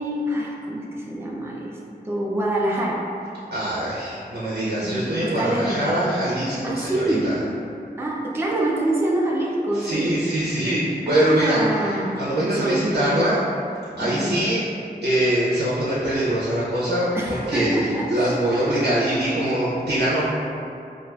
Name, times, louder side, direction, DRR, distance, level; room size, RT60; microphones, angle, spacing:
voice 1, 0.0-1.8 2.0-3.1 4.7-5.8 6.6-7.4 8.0-10.2 11.1-13.2 14.0-14.4 17.1-18.3, right 1 dB, 15° right, -3 dB, 0.4 m, -25 dB
voice 2, 3.5-7.4 9.7-11.6 11.9-13.4 13.9-14.6 15.0-20.2, right 1 dB, 70° right, -8 dB, 0.6 m, -23 dB
4.3 x 2.4 x 2.3 m, 2.6 s
wide cardioid pair, 80°, 17 cm